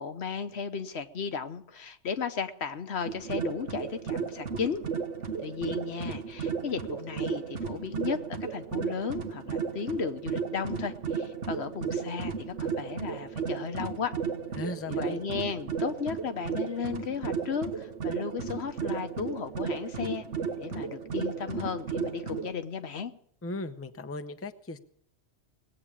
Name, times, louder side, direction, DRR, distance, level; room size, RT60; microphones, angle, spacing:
voice 1, 0.0-4.8 5.4-14.2 14.9-20.2 20.6-23.1, left 6 dB, 65° left, 9 dB, 1.2 m, -35 dB
sound 1, 3.1-22.5, right 6 dB, 90° right, 1.6 m, -34 dB
voice 2, 14.5-15.2 23.4-24.8, left 2 dB, 15° left, 9 dB, 0.6 m, -37 dB
19.0 x 8.7 x 8.6 m, 0.67 s
omnidirectional pair, 1.2 m